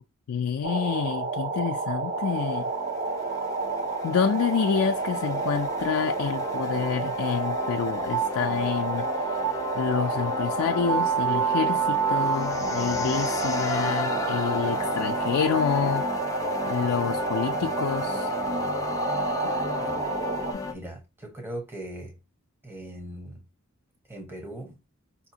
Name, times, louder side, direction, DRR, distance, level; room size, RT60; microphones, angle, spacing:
voice 1, 0.3-2.6 4.0-9.1 9.7-16.0 16.6-18.3 19.4-19.5, left 7 dB, 85° left, 0.3 m, -28 dB
sound 1, 0.6-20.5, right 5 dB, 40° right, 0.8 m, -29 dB
sound 2, 1.4-20.7, left 3 dB, 15° left, 0.5 m, -33 dB
voice 2, 20.7-22.1 22.6-23.4 24.1-24.8, right 1 dB, 10° right, 0.9 m, -39 dB
4.9 x 2.6 x 2.7 m
head